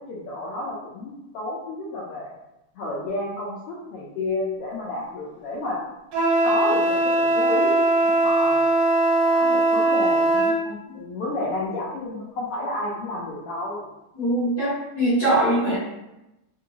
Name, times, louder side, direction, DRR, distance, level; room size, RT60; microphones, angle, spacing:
voice 1, 0.1-2.3 2.7-5.8 6.4-8.7 9.3-13.8 15.6-15.8, left 2 dB, 85° left, -6 dB, 1.2 m, -31 dB
Wind instrument woodwind instrument, 6.1-10.6, right 2 dB, 80° right, 1.3 m, -20 dB
voice 2, 14.1-15.8, right 1 dB, 55° left, -12 dB, 1.0 m, -22 dB
4.6 x 2.7 x 2.8 m, 0.94 s
omnidirectional pair, 3.4 m